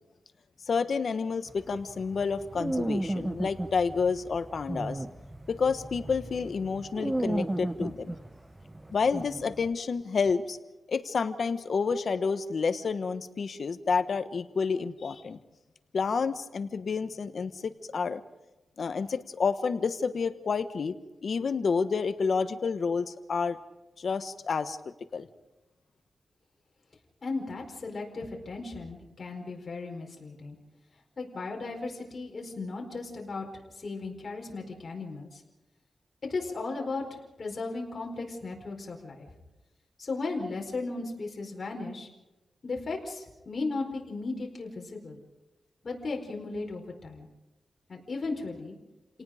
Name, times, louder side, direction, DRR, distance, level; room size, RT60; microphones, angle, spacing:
voice 1, 0.7-5.0 5.5-8.1 8.9-10.6 10.9-15.4 15.9-18.2 18.8-20.9 21.2-23.6 24.0-24.8 25.1-25.3, left 5 dB, 65° left, 11 dB, 1.2 m, -29 dB
sound 1, 1.5-9.7, right 1 dB, 15° right, 0.9 m, -34 dB
voice 2, 27.2-30.6 31.2-33.5 33.7-35.4 36.2-37.0 37.4-39.3 40.0-42.1 42.6-45.2 45.8-47.3 47.9-48.7, left 3 dB, 50° left, 0 dB, 4.7 m, -36 dB
29.5 x 18.5 x 5.1 m, 1.1 s
wide cardioid pair, 105°, 0 cm